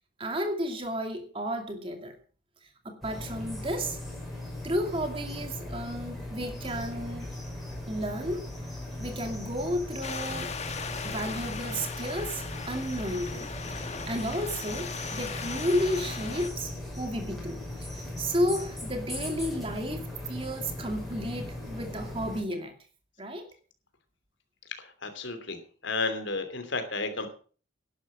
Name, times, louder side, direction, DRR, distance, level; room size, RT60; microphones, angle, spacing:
voice 1, 0.2-2.2 2.8-4.0 4.6-7.3 7.9-8.5 9.0-10.5 11.0-13.5 13.8-16.7 17.0-22.7 23.2-23.5, equal, 25° right, 5 dB, 2.5 m, -32 dB
sound 1, 3.0-22.4, left 1 dB, ahead, 5.4 m, -38 dB
sound 2, 10.0-16.5, left 5 dB, 30° left, 1.3 m, -38 dB
voice 2, 24.8-25.6 25.8-27.3, left 3 dB, 65° left, 8 dB, 2.9 m, -32 dB
11.5 x 11.5 x 6.3 m, 0.41 s
head